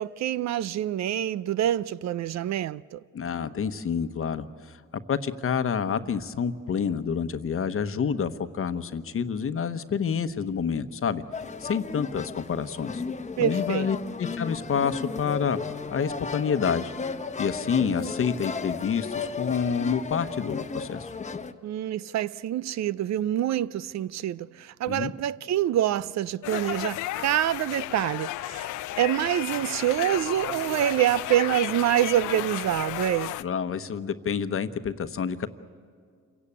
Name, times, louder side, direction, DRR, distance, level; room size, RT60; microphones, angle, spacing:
voice 1, 0.0-3.0 13.4-13.9 21.6-28.7 29.0-33.4, right 12 dB, 60° right, 0.5 m, -26 dB
voice 2, 3.1-4.5 5.1-11.2 11.6-13.0 13.4-15.6 15.9-16.9 17.4-21.1 24.9-25.1 33.4-35.5, left 6 dB, 45° left, 1.0 m, -28 dB
sound 1, 11.3-21.5, left 5 dB, 25° left, 1.0 m, -35 dB
sound 2, 26.4-33.4, left 15 dB, 80° left, 0.6 m, -33 dB
28.0 x 17.0 x 8.5 m
cardioid pair, 90°, 30 cm